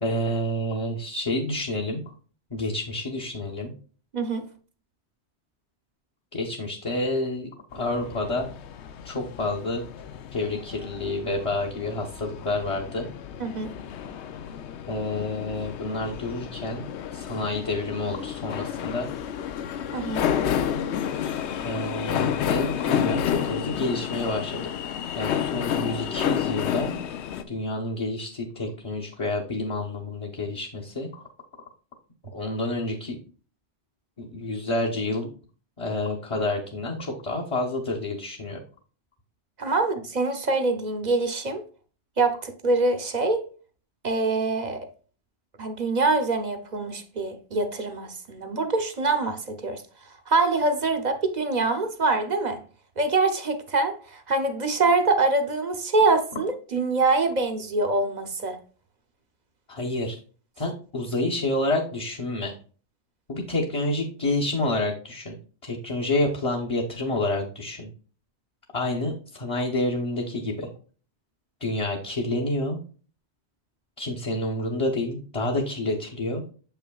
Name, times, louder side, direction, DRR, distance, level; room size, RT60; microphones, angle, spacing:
voice 1, 0.0-2.0 2.5-3.7 6.3-8.5 9.0-9.8 10.3-13.1 14.9-16.8 17.1-19.1 21.6-24.6 25.2-26.9 27.5-31.2 32.3-33.2 34.2-35.3 35.8-38.6 59.7-60.2 60.6-62.5 63.3-65.3 65.6-67.9 68.7-70.7 71.6-72.8 74.0-76.4, left 2 dB, 30° left, 0.9 m, -28 dB
sound 1, 7.7-27.4, left 9 dB, 85° left, 0.9 m, -30 dB
voice 2, 13.4-13.7 19.9-20.3 39.6-41.6 42.2-43.4 44.0-44.9 45.6-49.8 50.3-52.6 53.0-58.6, right 3 dB, 45° right, 0.7 m, -24 dB
7.3 x 5.7 x 2.3 m
omnidirectional pair, 1.1 m